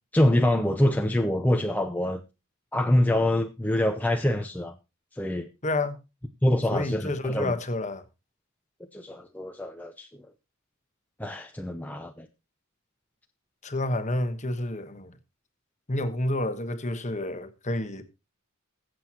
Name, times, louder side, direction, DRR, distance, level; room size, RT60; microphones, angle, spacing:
voice 1, 0.1-2.2 2.7-4.7 5.2-5.5 6.4-7.5 8.9-10.1 11.2-12.3, left 1 dB, 5° left, 0.6 m, -25 dB
voice 2, 5.6-6.0 6.7-8.0 13.6-15.2 15.9-18.0, left 1 dB, 35° left, 1.2 m, -29 dB
21.0 x 7.8 x 2.9 m
head